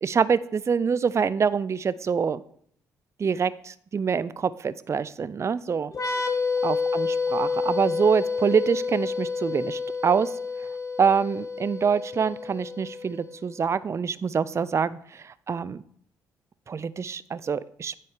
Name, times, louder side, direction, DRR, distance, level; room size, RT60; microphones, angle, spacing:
voice 1, 0.0-2.4 3.2-5.9 6.6-10.3 11.0-15.8 16.7-18.0, right 6 dB, 35° right, 16 dB, 0.4 m, -25 dB
sound 1, 5.9-13.4, left 4 dB, 40° left, 1.5 m, -29 dB
9.7 x 4.2 x 5.1 m, 0.63 s
hypercardioid pair, 50°, 8 cm